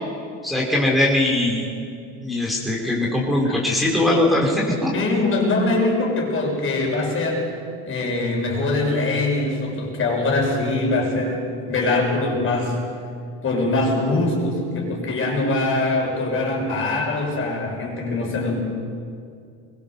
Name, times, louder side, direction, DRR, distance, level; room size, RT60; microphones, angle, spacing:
voice 1, 0.4-1.6 2.2-4.9, left 1 dB, ahead, -4 dB, 3.9 m, -20 dB
voice 2, 4.9-7.5 7.8-12.7 13.4-18.6, left 2 dB, 35° left, 0 dB, 6.5 m, -23 dB
22.5 x 22.0 x 6.7 m, 2.4 s
supercardioid pair, 125°, 36 cm